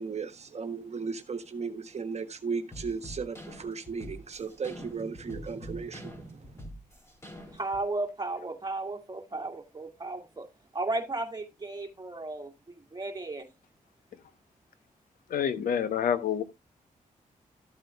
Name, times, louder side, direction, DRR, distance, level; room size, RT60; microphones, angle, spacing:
voice 1, 0.0-6.6, right 5 dB, 50° right, 1.4 m, -36 dB
sound 1, 2.7-7.8, equal, 20° left, 3.9 m, -45 dB
voice 2, 7.4-10.5 10.7-13.5, right 2 dB, 30° right, 2.0 m, -35 dB
voice 3, 15.3-16.4, left 8 dB, 80° left, 1.0 m, -27 dB
13.5 x 7.8 x 2.3 m
cardioid pair, 65°, 14 cm